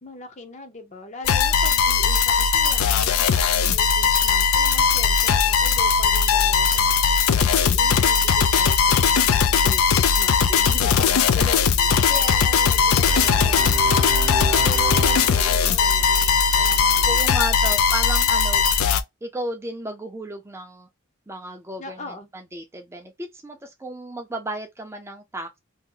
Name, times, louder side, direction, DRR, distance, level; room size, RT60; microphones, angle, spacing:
voice 1, 0.0-6.9 7.4-14.1 14.6-17.4 21.8-22.3, left 1 dB, 35° left, 0.6 m, -39 dB
sound 1, 1.2-19.0, left 6 dB, 80° left, 0.4 m, -19 dB
sound 2, 11.5-17.3, left 2 dB, 60° left, 1.5 m, -48 dB
Brass instrument, 13.1-16.2, right 4 dB, 50° right, 0.8 m, -31 dB
voice 2, 17.0-18.6 19.2-20.9 21.3-25.6, right 1 dB, 10° right, 0.4 m, -34 dB
2.7 x 2.1 x 3.7 m
head